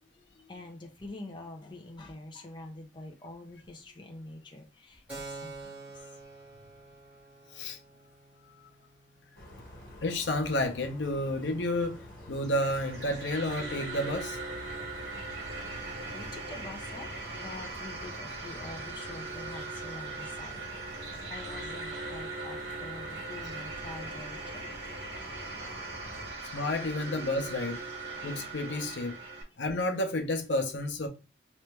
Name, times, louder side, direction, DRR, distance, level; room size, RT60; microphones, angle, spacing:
voice 1, 0.0-6.2 16.0-24.6 27.9-28.2 29.3-29.6, left 2 dB, 25° left, 0.6 m, -46 dB
Keyboard (musical), 5.1-12.4, right 3 dB, 5° right, 2.0 m, -49 dB
sound 1, 9.3-26.3, equal, 50° left, 1.6 m, -48 dB
voice 2, 10.0-14.4 26.5-27.8 28.2-29.2 29.6-31.1, left 1 dB, 85° left, 0.8 m, -31 dB
sound 2, 12.4-29.4, right 3 dB, 60° right, 1.3 m, -40 dB
3.2 x 3.1 x 3.2 m
head